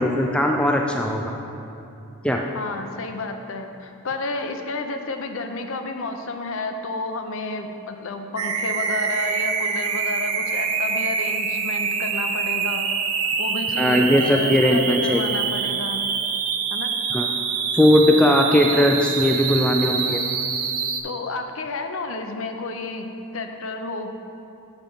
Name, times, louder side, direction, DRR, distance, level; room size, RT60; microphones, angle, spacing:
voice 1, 0.0-1.3 2.2-2.4 13.8-15.2 17.1-17.3 17.7-20.2, left 1 dB, 5° left, 1 dB, 0.3 m, -19 dB
voice 2, 2.5-12.9 13.4-16.0 16.7-16.9 21.0-23.1 23.3-24.1, left 3 dB, 60° left, 5 dB, 0.6 m, -31 dB
sound 1, 8.4-21.0, right 6 dB, 80° right, 0.7 m, -25 dB
9.0 x 4.4 x 5.5 m, 2.7 s
head